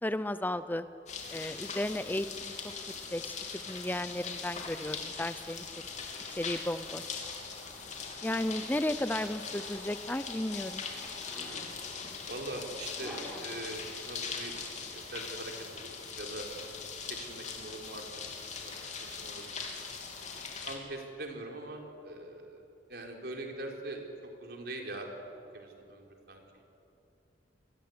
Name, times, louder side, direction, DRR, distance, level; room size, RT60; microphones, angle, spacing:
voice 1, 0.0-0.9 1.3-2.5 3.1-5.6 6.4-7.2 8.2-10.8, left 1 dB, 10° left, 12 dB, 0.6 m, -34 dB
sound 1, 1.1-20.8, left 5 dB, 40° left, 3.5 m, -41 dB
Zipper (clothing), 5.8-14.2, equal, 5° right, 8.0 m, -52 dB
voice 2, 12.3-14.5 14.9-15.9 16.2-16.5 17.1-18.0 18.6-19.5 20.7-22.6 22.9-25.1 25.5-26.4, right 2 dB, 60° right, 2 dB, 4.4 m, -42 dB
27.5 x 21.5 x 9.7 m, 2.8 s
head